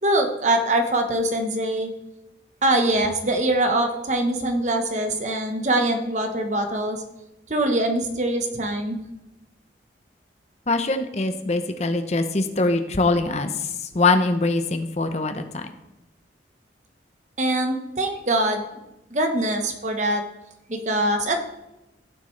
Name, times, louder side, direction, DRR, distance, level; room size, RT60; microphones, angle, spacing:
voice 1, 0.0-1.9 2.6-7.0 7.5-9.0 17.4-18.6 19.1-20.2 20.7-21.4, right 1 dB, 40° right, 4 dB, 1.1 m, -23 dB
voice 2, 10.7-15.7, left 3 dB, 35° left, 8 dB, 0.7 m, -23 dB
15.5 x 6.8 x 3.3 m, 0.95 s
head